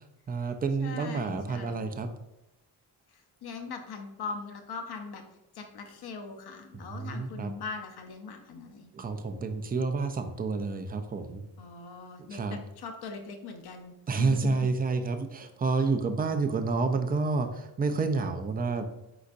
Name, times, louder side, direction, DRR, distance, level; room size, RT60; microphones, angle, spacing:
voice 1, 0.3-2.1 6.7-7.5 8.9-11.4 12.3-12.6 14.1-18.8, right 4 dB, 20° right, 7 dB, 0.4 m, -29 dB
voice 2, 0.8-1.8 3.1-5.2 5.5-8.9 11.6-14.8, left 4 dB, 65° left, 4 dB, 0.7 m, -41 dB
4.3 x 4.0 x 2.5 m, 0.91 s
cardioid pair, 90°, 42 cm